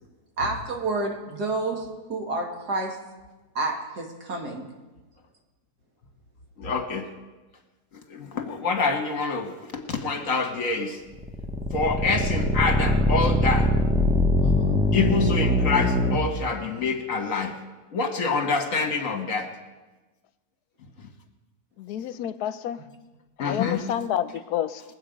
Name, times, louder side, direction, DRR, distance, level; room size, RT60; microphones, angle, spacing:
voice 1, 0.4-1.8 2.1-3.0 3.5-4.7 14.4-14.8, right 2 dB, 85° right, 1 dB, 2.5 m, -29 dB
voice 2, 6.6-7.1 8.1-9.5 9.9-11.0 11.7-13.7 14.9-17.5 17.9-19.5 23.4-23.8, left 4 dB, 60° left, 4 dB, 1.8 m, -26 dB
sound 1, 11.1-16.2, left 1 dB, 5° right, 0.7 m, -22 dB
voice 3, 21.8-22.8 23.4-24.8, left 10 dB, 85° left, 13 dB, 1.2 m, -29 dB
21.5 x 8.2 x 5.2 m, 1.2 s
omnidirectional pair, 1.6 m